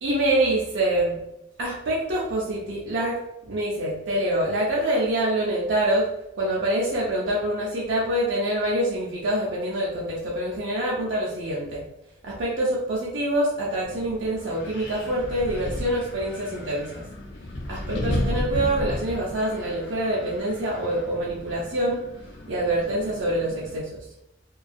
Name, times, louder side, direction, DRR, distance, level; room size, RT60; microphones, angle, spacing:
voice 1, 0.0-1.2 1.6-3.2 3.5-6.1 6.4-11.8 12.2-17.0 17.7-22.0 22.5-24.0, right 1 dB, 60° right, -5 dB, 0.5 m, -25 dB
Wind, 13.8-23.8, left 1 dB, 55° left, 0.4 m, -34 dB
2.5 x 2.3 x 2.3 m, 0.86 s
head